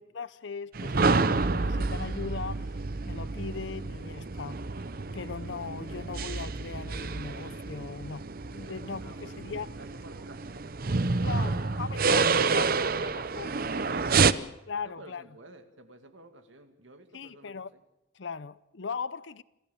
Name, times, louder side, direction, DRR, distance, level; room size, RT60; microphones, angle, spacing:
voice 1, 0.0-2.7 3.0-4.6 5.1-9.7 11.2-13.7 14.4-15.2 17.1-17.7 18.1-19.4, left 5 dB, 65° left, 0.7 m, -39 dB
sound 1, 0.7-14.3, right 4 dB, 45° right, 0.7 m, -29 dB
voice 2, 9.0-9.4 9.7-10.7 13.6-14.4 14.8-17.8, right 1 dB, 75° right, 2.2 m, -49 dB
27.5 x 15.0 x 7.1 m
head